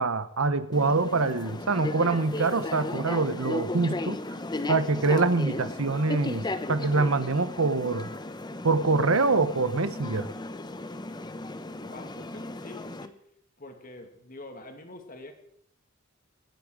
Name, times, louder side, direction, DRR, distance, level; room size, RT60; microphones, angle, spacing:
voice 1, 0.0-4.2 4.7-8.1 8.6-10.3, right 3 dB, 75° right, 13 dB, 1.1 m, -25 dB
sound 1, 0.7-13.1, left 2 dB, 20° left, 0.8 m, -35 dB
voice 2, 11.7-13.2 13.6-15.3, left 2 dB, 40° left, 5 dB, 2.4 m, -45 dB
26.0 x 9.1 x 4.9 m, 0.65 s
head